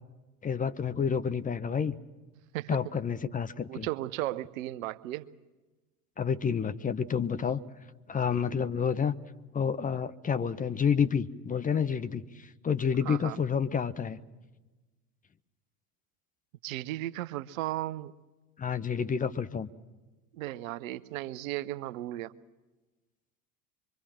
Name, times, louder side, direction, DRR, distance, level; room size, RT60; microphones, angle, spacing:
voice 1, 0.4-2.0 2.7-3.9 6.2-7.6 8.1-9.1 9.5-14.2 18.6-19.7, left 7 dB, 20° left, 12 dB, 0.8 m, -29 dB
voice 2, 3.7-5.3 13.0-13.4 16.6-18.1 20.3-22.3, right 15 dB, 60° right, 16 dB, 0.9 m, -35 dB
24.5 x 23.5 x 7.5 m, 1.2 s
figure-of-eight pair, 75°, 45 cm